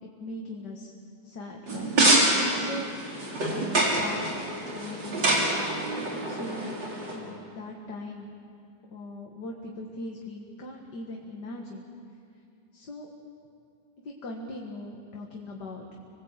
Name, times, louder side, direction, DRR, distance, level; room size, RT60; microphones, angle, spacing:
voice 1, 0.0-0.9 1.2-3.2 3.5-4.4 4.7-6.8 7.1-8.3 8.9-11.8 12.7-13.1 14.0-15.8, left 2 dB, 65° left, 0 dB, 2.4 m, -40 dB
sound 1, 1.7-7.2, right 2 dB, 80° right, 4.7 m, -26 dB
27.0 x 21.0 x 8.3 m, 2.5 s
omnidirectional pair, 1.9 m